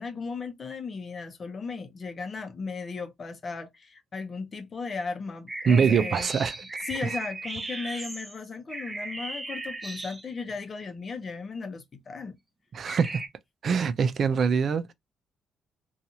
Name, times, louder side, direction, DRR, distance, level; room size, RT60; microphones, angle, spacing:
voice 1, 0.0-6.3 6.8-12.4, left 4 dB, 40° left, 0.7 m, -36 dB
sound 1, 5.5-10.5 12.8-13.3, right 3 dB, 20° right, 0.7 m, -36 dB
voice 2, 5.7-6.5 12.7-13.2 13.6-14.9, right 6 dB, 55° right, 0.3 m, -23 dB
2.7 x 2.4 x 2.7 m
cardioid pair, 90°, 0 cm